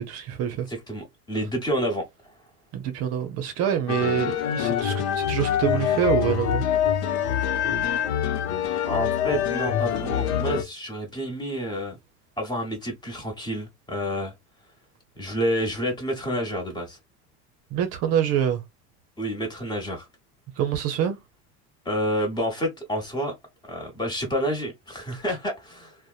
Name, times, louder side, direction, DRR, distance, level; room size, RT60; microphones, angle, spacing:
voice 1, 0.0-0.7 2.7-6.6 17.7-18.6 20.6-21.2, right 9 dB, 45° right, 0.6 m, -26 dB
voice 2, 0.7-2.0 8.9-12.0 12.4-14.3 15.2-17.0 19.2-20.1 21.8-23.3 23.6-26.0, equal, 15° left, 1.1 m, -29 dB
sound 1, 3.9-10.6, left 9 dB, 80° left, 0.7 m, -25 dB
2.8 x 2.1 x 2.3 m
supercardioid pair, 120°, 33 cm